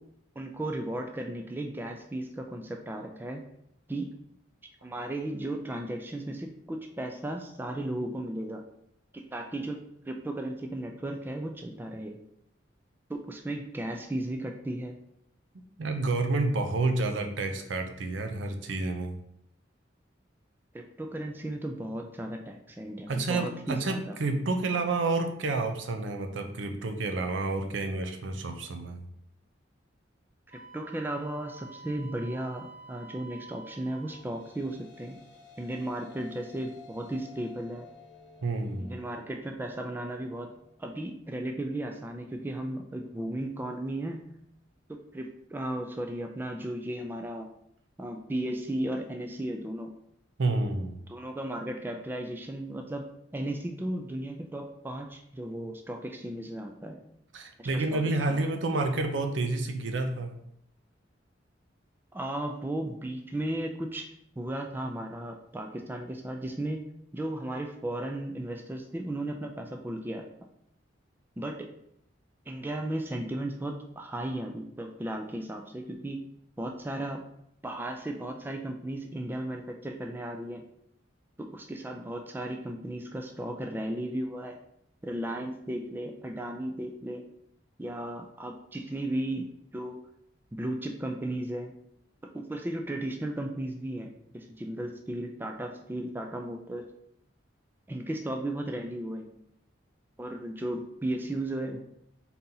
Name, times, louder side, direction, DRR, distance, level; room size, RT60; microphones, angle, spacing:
voice 1, 0.4-3.4 3.9-4.1 4.8-8.6 9.1-12.2 13.1-15.0 20.7-24.2 30.7-35.2 35.6-37.9 38.8-40.5 40.8-44.2 44.9-47.5 48.0-49.9 51.1-53.0 53.3-57.0 57.6-58.0 58.3-58.4 62.1-64.1 64.4-66.8 67.1-70.2 71.4-71.7 72.5-76.2 76.6-77.2 77.6-80.6 81.4-84.6 85.0-87.2 87.8-89.5 89.7-90.0 90.5-91.7 92.3-96.9 97.9-99.3 100.2-101.8, right 1 dB, 10° right, 4 dB, 0.3 m, -35 dB
voice 2, 15.5-19.2 23.1-29.1 38.4-39.0 50.4-51.0 57.3-60.4, right 2 dB, 80° right, 6 dB, 0.5 m, -29 dB
Wind instrument woodwind instrument, 30.5-34.2, right 4 dB, 55° right, 1.0 m, -49 dB
sound 1, 33.8-42.3, left 4 dB, 75° left, 1.0 m, -55 dB
4.0 x 2.8 x 3.8 m, 0.75 s
head